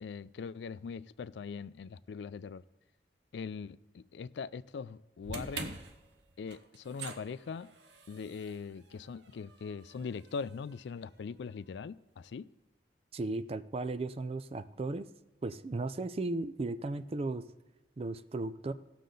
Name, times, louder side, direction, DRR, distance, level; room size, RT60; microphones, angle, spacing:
voice 1, 0.0-2.6 3.3-5.7 6.4-7.7 8.1-12.4, left 5 dB, 75° left, 0.3 m, -41 dB
sound 1, 5.2-11.5, right 3 dB, 75° right, 1.0 m, -47 dB
voice 2, 13.1-15.1 15.4-17.4 18.0-18.7, right 2 dB, 35° right, 0.4 m, -35 dB
17.0 x 6.6 x 3.8 m
head